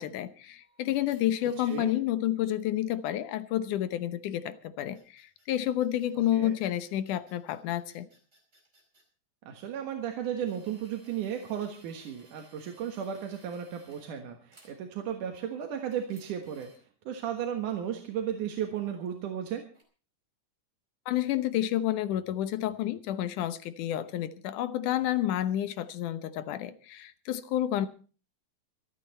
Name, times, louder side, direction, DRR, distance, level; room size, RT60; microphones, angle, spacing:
voice 1, 0.0-8.1 21.1-27.9, left 12 dB, 85° left, 2.5 m, -30 dB
sound 1, 0.6-1.9 4.8-9.0 9.7-14.1 14.5-14.8 15.2-16.8 19.7-19.8, right 2 dB, 20° right, 5.1 m, -61 dB
voice 2, 9.5-16.7 17.1-19.6, right 9 dB, 85° right, 3.1 m, -34 dB
25.5 x 9.1 x 4.2 m
omnidirectional pair, 3.5 m